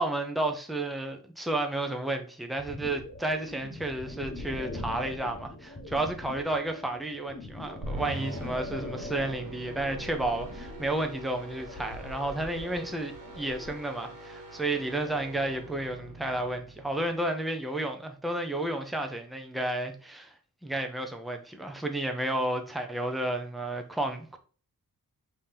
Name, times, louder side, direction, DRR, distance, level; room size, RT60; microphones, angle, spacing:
voice 1, 0.0-20.3 20.6-24.4, right 1 dB, ahead, 0.5 m, -32 dB
sound 1, 2.6-13.7, left 2 dB, 25° left, 1.0 m, -42 dB
sound 2, 7.8-17.2, right 1 dB, 60° right, 1.2 m, -43 dB
5.5 x 2.8 x 3.3 m
wide cardioid pair, 135°, 36 cm